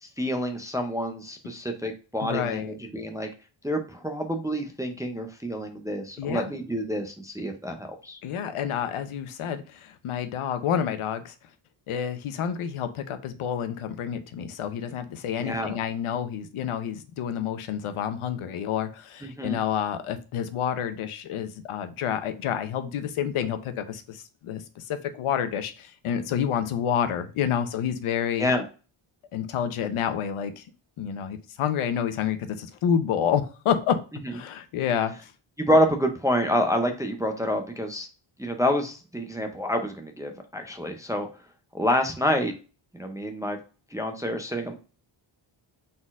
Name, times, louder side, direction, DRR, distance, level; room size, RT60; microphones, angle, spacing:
voice 1, 0.2-3.3 3.6-8.2 15.4-15.8 19.2-19.6 28.4-28.6 35.6-38.1 38.4-41.3 41.7-42.5 42.9-43.6 43.9-44.7, equal, 5° right, 4 dB, 0.4 m, -27 dB
voice 2, 2.2-2.7 6.2-6.5 8.2-11.3 11.9-28.5 29.3-30.6 31.0-34.0 34.3-35.3, left 8 dB, 80° left, 10 dB, 0.8 m, -29 dB
4.2 x 3.9 x 2.3 m, 0.35 s
wide cardioid pair, 165°, 49 cm